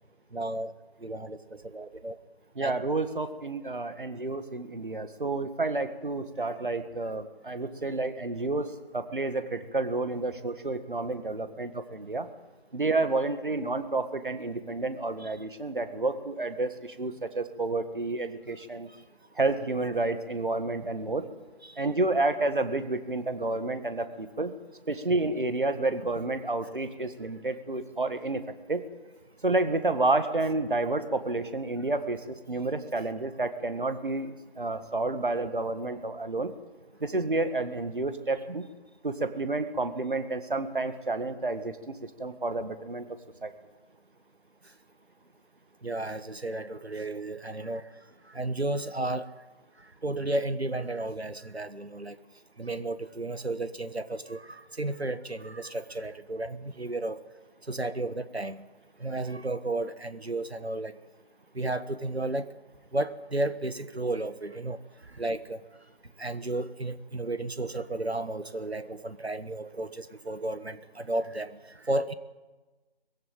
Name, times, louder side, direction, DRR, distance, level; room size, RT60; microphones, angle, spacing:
voice 1, 0.3-0.7 1.0-2.2 2.6-2.7 15.2-15.3 45.8-47.9 48.3-49.3 50.0-52.2 52.6-57.2 57.7-58.6 59.0-61.0 61.5-62.5 62.9-64.8 65.2-65.6 66.2-72.1, right 2 dB, 85° right, 13 dB, 1.5 m, -33 dB
voice 2, 2.6-8.7 8.9-12.3 12.7-18.9 19.4-21.3 21.8-24.5 24.9-28.4 28.7-28.8 29.4-36.5 37.0-38.7 39.0-41.9 42.2-43.1 43.4-43.5, right 2 dB, 55° right, 10 dB, 1.7 m, -30 dB
21.5 x 15.5 x 9.1 m, 1.2 s
figure-of-eight pair, 165°, 31 cm